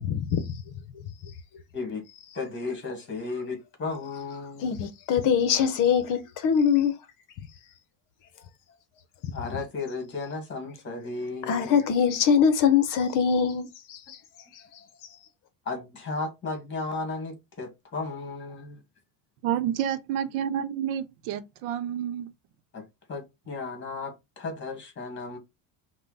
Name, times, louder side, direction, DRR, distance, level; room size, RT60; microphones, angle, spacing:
voice 1, 0.0-0.4 4.6-6.9 11.5-14.0, left 7 dB, 50° left, 0.8 m, -23 dB
voice 2, 2.3-4.8 9.3-11.9 15.6-18.8 22.7-25.4, left 3 dB, 25° left, 1.6 m, -34 dB
voice 3, 19.4-22.3, right 10 dB, 85° right, 0.8 m, -29 dB
5.6 x 2.2 x 4.0 m
cardioid pair, 160°, 43 cm